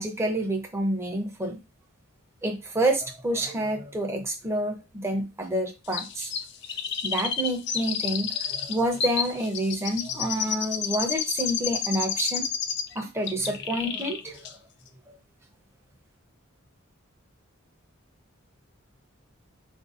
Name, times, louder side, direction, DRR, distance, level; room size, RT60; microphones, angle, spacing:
voice 1, 0.0-1.6 2.4-6.3 7.0-12.5 12.9-14.5, right 1 dB, 10° right, 2 dB, 0.5 m, -28 dB
Chirp tweet, 5.9-13.0 13.3-14.2 14.4-14.5, left 7 dB, 50° left, 0.4 m, -30 dB
4.4 x 2.5 x 2.4 m, 0.28 s
head